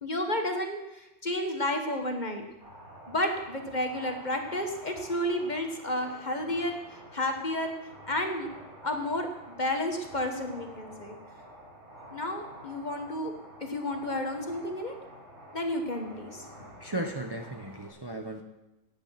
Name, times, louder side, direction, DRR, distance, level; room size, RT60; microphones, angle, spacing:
voice 1, 0.0-2.4 3.1-7.7 8.1-8.5 8.8-11.2 12.1-13.3 13.6-14.9 15.5-16.4, left 1 dB, 35° left, 4 dB, 1.7 m, -31 dB
sound 1, 2.6-17.9, equal, 60° right, 5.2 m, -49 dB
voice 2, 16.6-18.4, right 1 dB, 20° right, 4 dB, 0.9 m, -36 dB
15.5 x 10.0 x 5.9 m, 0.98 s
omnidirectional pair, 1.3 m